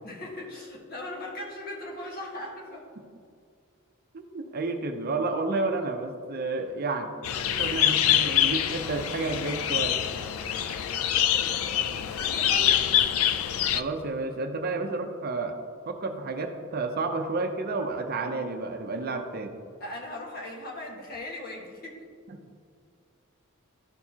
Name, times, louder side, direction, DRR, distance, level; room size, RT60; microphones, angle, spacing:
voice 1, 0.0-2.8 10.7-12.8 19.8-22.0, left 1 dB, 45° left, -2 dB, 1.5 m, -39 dB
voice 2, 4.1-7.1 7.6-10.0 13.7-15.6 15.9-19.5 22.3-22.4, right 3 dB, 45° right, 5 dB, 0.6 m, -31 dB
sound 1, 7.2-13.8, left 10 dB, 80° left, 0.3 m, -25 dB
12.5 x 4.6 x 2.8 m, 2.2 s
head